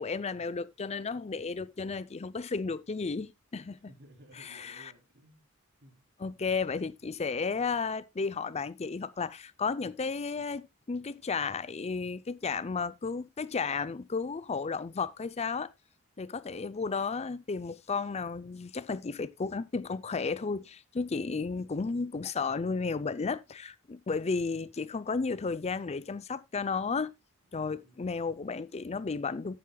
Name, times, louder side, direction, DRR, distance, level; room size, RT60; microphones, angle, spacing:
voice 1, 0.0-3.8 4.4-4.9 6.2-15.7 16.2-27.1 27.5-29.6, left 4 dB, 30° left, 0.5 m, -33 dB
voice 2, 3.9-5.4 5.8-6.0 21.2-21.9 27.8-28.1, right 1 dB, 50° right, 3.7 m, -57 dB
14.5 x 8.5 x 2.3 m
head